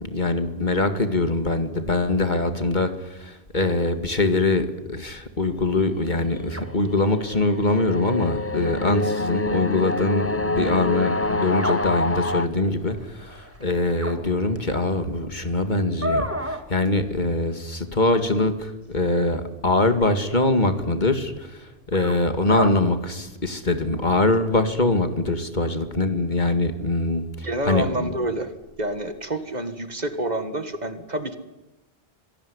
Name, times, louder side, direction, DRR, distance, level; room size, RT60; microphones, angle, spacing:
voice 1, 0.0-21.6 21.9-28.1, left 2 dB, 50° left, 9 dB, 2.2 m, -23 dB
sound 1, 5.5-15.3 15.8-16.6 17.0-17.6 18.1-18.2 19.0-19.1 20.0-20.1 21.9-22.1 22.5-22.7 23.9-24.0, equal, 15° right, 2.4 m, -34 dB
sound 2, 6.0-12.5, left 2 dB, 15° left, 0.7 m, -27 dB
voice 2, 27.4-28.5 28.8-31.4, right 1 dB, 45° right, 10 dB, 1.9 m, -28 dB
25.5 x 17.5 x 9.7 m, 1.0 s
omnidirectional pair, 1.0 m